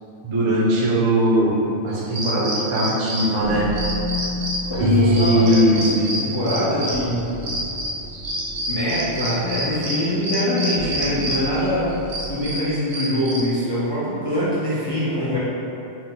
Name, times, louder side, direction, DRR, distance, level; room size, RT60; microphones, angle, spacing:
voice 1, 0.2-3.7 4.8-6.0, equal, 35° right, -5 dB, 0.4 m, -19 dB
sound 1, 1.9-13.6, equal, 60° right, 0.9 m, -28 dB
sound 2, 3.4-12.6, left 3 dB, 85° left, 1.2 m, -33 dB
Keyboard (musical), 4.7-8.2, right 1 dB, 65° left, 0.8 m, -29 dB
voice 2, 4.7-7.3 8.7-15.4, equal, 40° left, -10 dB, 0.3 m, -24 dB
4.2 x 2.1 x 3.9 m, 2.8 s
omnidirectional pair, 1.4 m